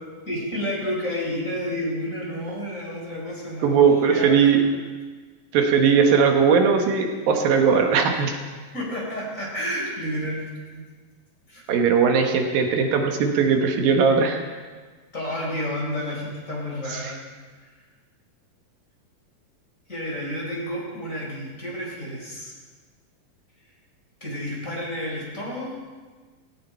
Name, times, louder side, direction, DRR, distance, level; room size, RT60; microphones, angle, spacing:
voice 1, 0.3-4.6 8.7-10.8 11.5-11.6 15.1-17.2 19.9-22.5 24.2-25.7, equal, 20° left, -3 dB, 4.3 m, -30 dB
voice 2, 3.6-4.6 5.5-8.4 11.7-14.4 17.0-17.1, right 6 dB, 80° right, 3 dB, 3.1 m, -19 dB
17.5 x 17.5 x 4.5 m, 1.4 s
omnidirectional pair, 4.1 m